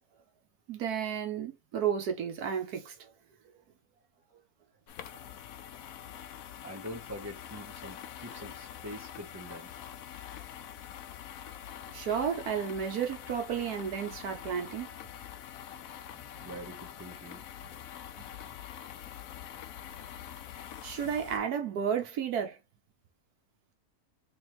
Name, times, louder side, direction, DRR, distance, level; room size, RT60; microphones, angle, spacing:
voice 1, 0.7-3.0 11.9-14.9 20.8-22.6, right 8 dB, 85° right, 1.4 m, -32 dB
sound 1, 4.9-21.4, left 10 dB, 70° left, 1.0 m, -45 dB
voice 2, 6.6-9.7 16.2-17.4 19.6-19.7, equal, 15° right, 0.7 m, -44 dB
3.5 x 3.5 x 3.0 m
omnidirectional pair, 1.6 m